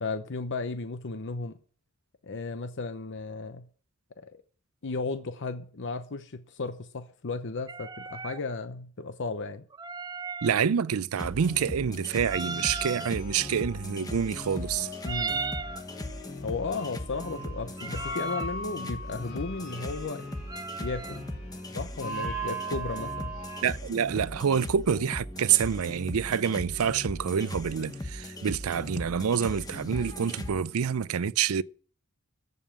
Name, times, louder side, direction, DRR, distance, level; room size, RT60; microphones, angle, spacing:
voice 1, 0.0-1.5 2.2-3.7 4.2-4.4 4.8-9.6 15.0-15.4 16.4-20.3 20.8-21.2 21.7-23.4, left 3 dB, 60° left, 0.8 m, -34 dB
sound 1, 7.7-8.4 9.7-10.6 12.2-13.1 15.0-15.8 17.7-18.5 20.5-21.2, right 4 dB, 20° right, 0.5 m, -36 dB
voice 2, 10.4-14.9 23.6-31.6, right 7 dB, 75° right, 0.5 m, -27 dB
sound 2, 11.2-30.5, left 1 dB, 20° left, 1.2 m, -39 dB
sound 3, 13.1-23.6, right 2 dB, 75° left, 2.5 m, -40 dB
14.5 x 5.4 x 8.6 m
head